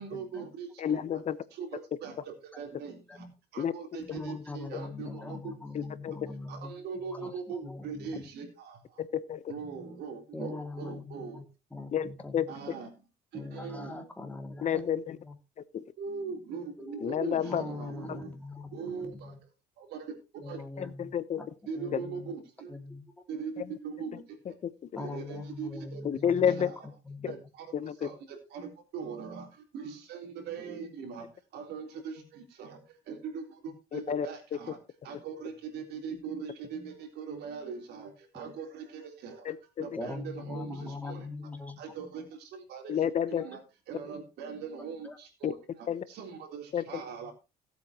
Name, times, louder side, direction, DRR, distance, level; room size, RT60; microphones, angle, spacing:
voice 1, 0.0-1.0 1.5-3.3 3.5-5.5 6.5-9.0 9.5-11.4 12.5-12.9 13.3-14.1 16.0-18.4 18.7-19.4 19.8-20.1 20.4-20.6 21.7-22.8 23.3-24.6 25.0-26.0 26.6-26.9 27.2-27.7 28.0-31.3 31.5-34.8 35.0-39.5 39.8-41.3 41.8-43.0 43.3-43.6 43.9-47.3, right 6 dB, 75° right, 3 dB, 3.6 m, -41 dB
voice 2, 0.8-1.4 3.6-3.7 5.7-6.2 9.0-9.4 11.9-12.5 14.6-15.2 15.7-15.8 17.0-17.6 18.1-18.2 20.8-21.4 21.9-22.0 26.0-26.7 27.2-27.3 27.7-28.1 33.9-34.3 39.4-40.0 42.9-43.4 45.4-45.5 45.9-46.0 46.7-46.8, left 9 dB, 45° left, 16 dB, 0.9 m, -30 dB
voice 3, 4.1-6.7 7.1-8.3 10.3-11.4 11.7-12.5 13.3-14.8 15.2-15.3 16.8-19.4 20.4-21.5 21.8-22.3 22.7-23.0 25.0-26.7 27.0-27.3 39.8-41.8 43.4-43.5 45.0-45.2, left 3 dB, 10° left, 4 dB, 2.5 m, -42 dB
17.5 x 8.2 x 2.9 m, 0.27 s
cardioid pair, 110°, 17 cm